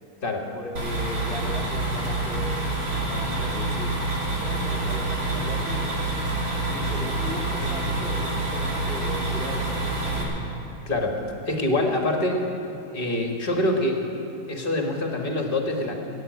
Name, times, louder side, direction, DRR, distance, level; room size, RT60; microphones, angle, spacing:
voice 1, 0.5-4.0 4.3-6.0 6.7-10.5, left 1 dB, ahead, -2 dB, 1.9 m, -38 dB
sound 1, 0.8-10.2, right 2 dB, 75° right, 3.1 m, -27 dB
voice 2, 10.8-11.2 11.5-12.5 12.9-14.0 14.5-15.9, left 1 dB, 35° left, 2 dB, 1.8 m, -25 dB
16.5 x 7.9 x 9.5 m, 2.7 s
omnidirectional pair, 1.6 m